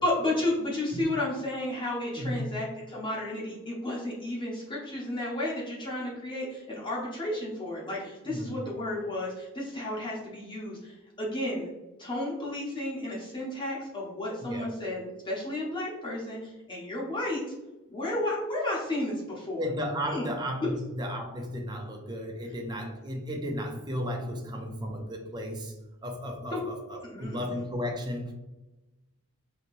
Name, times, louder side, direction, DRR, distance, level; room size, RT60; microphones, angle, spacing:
voice 1, 0.0-11.7 12.0-17.4 17.9-19.7 20.1-20.7 26.5-26.6 27.0-27.6, left 1 dB, 20° left, -5 dB, 0.7 m, -32 dB
voice 2, 8.3-8.6 14.4-14.7 19.6-25.7 26.0-28.3, equal, 20° right, 2 dB, 0.5 m, -34 dB
3.1 x 2.8 x 2.5 m, 1.0 s
head